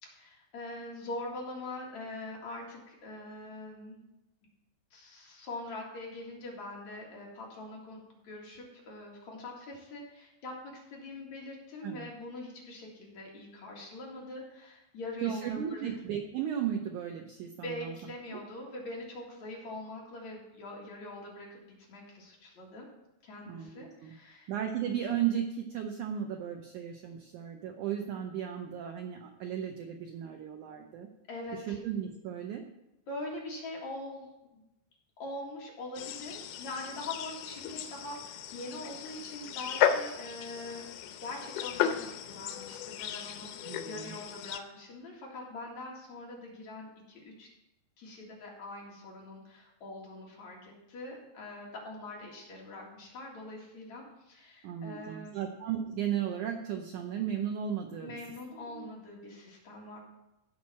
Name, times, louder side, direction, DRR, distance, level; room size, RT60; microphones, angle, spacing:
voice 1, 0.0-4.0 4.9-8.0 8.2-15.9 17.6-21.6 21.9-22.9 23.2-24.5 31.3-31.8 33.1-34.6 35.2-40.9 41.2-47.5 48.0-55.5 58.0-60.0, left 2 dB, 50° left, -3 dB, 3.0 m, -43 dB
voice 2, 15.2-17.9 18.3-18.4 23.5-24.1 24.5-31.1 31.5-32.6 43.7-44.1 54.6-58.2 58.5-58.9, right 9 dB, 90° right, 4 dB, 1.7 m, -35 dB
sound 1, 36.0-44.6, left 9 dB, 85° left, 2.7 m, -35 dB
16.0 x 6.3 x 4.2 m, 0.93 s
omnidirectional pair, 4.6 m